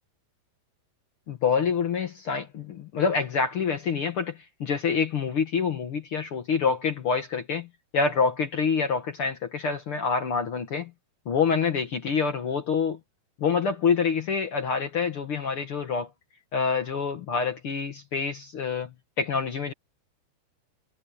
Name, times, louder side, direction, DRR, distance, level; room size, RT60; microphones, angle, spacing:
voice 1, 1.3-7.7 7.9-10.9 11.2-13.0 13.4-16.1 16.5-18.9 19.2-19.7, left 5 dB, 70° left, 1.3 m, -26 dB
omnidirectional pair, 4.7 m